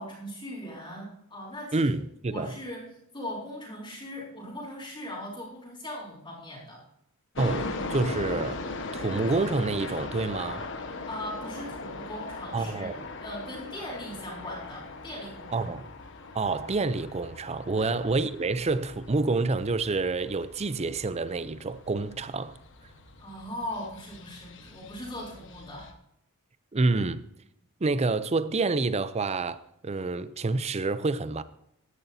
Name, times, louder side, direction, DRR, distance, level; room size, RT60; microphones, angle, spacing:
voice 1, 0.0-1.9 2.3-2.8 3.1-6.8 11.1-12.9 13.2-15.7 17.7-17.9 23.2-25.9, left 1 dB, 20° left, 3.6 m, -39 dB
voice 2, 1.7-2.5 7.4-8.6 8.9-10.7 12.5-12.9 15.5-15.9 16.3-22.6 26.7-27.2 27.8-29.6 29.8-31.4, right 3 dB, 30° right, 0.5 m, -28 dB
sound 1, 7.3-25.9, left 3 dB, 55° left, 1.3 m, -40 dB
15.5 x 11.0 x 2.8 m
head